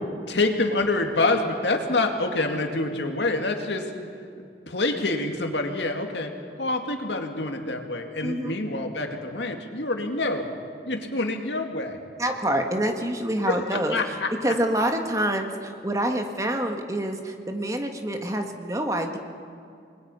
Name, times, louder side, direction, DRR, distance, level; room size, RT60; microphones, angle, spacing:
voice 1, 0.3-3.9 4.7-6.3 6.6-10.5 10.8-12.0 13.5-14.5, left 2 dB, 80° left, 4 dB, 2.3 m, -26 dB
voice 2, 8.2-8.5 12.2-14.0 14.4-19.2, right 1 dB, 20° right, 4 dB, 1.6 m, -26 dB
28.5 x 21.0 x 5.6 m, 2.4 s
head